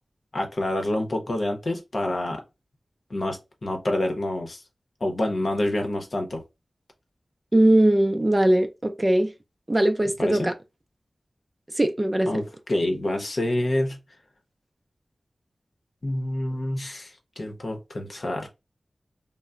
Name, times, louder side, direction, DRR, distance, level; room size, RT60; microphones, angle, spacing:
voice 1, 0.3-2.4 3.1-4.6 5.0-6.4 10.2-10.5 12.3-14.0 16.0-18.5, left 1 dB, 60° left, 0.7 m, -27 dB
voice 2, 7.5-9.3 9.7-10.5 11.8-12.3, right 1 dB, 25° right, 0.4 m, -20 dB
2.2 x 2.0 x 3.6 m
wide cardioid pair, 55°, 0 cm